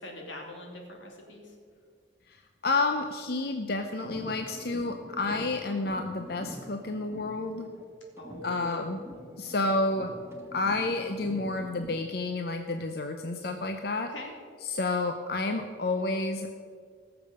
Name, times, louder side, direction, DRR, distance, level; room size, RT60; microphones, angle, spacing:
voice 1, 0.0-1.6 8.2-9.1 14.0-14.4, left 1 dB, 85° left, 0 dB, 2.7 m, -42 dB
voice 2, 2.3-7.7 8.4-9.0 9.4-10.1 10.5-14.1 14.6-16.5, left 3 dB, 55° left, 5 dB, 0.6 m, -30 dB
sound 1, 4.0-7.9 8.2-12.1, equal, 15° right, 1.3 m, -45 dB
17.5 x 6.9 x 6.7 m, 2.1 s
head